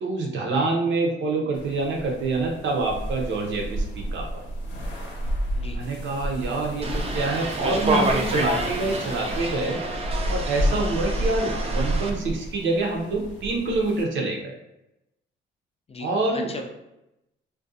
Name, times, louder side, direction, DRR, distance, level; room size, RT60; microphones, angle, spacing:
voice 1, 0.0-4.4 5.7-9.8 10.3-14.5 16.0-16.5, right 2 dB, 70° right, 0 dB, 0.7 m, -26 dB
sound 1, 1.5-14.0, right 1 dB, 75° left, 0.8 m, -31 dB
sound 2, 6.8-12.1, right 2 dB, 30° right, 0.5 m, -28 dB
voice 2, 15.9-16.7, left 2 dB, 30° left, 3 dB, 0.4 m, -37 dB
2.5 x 2.2 x 2.6 m, 0.90 s
cardioid pair, 90°, 20 cm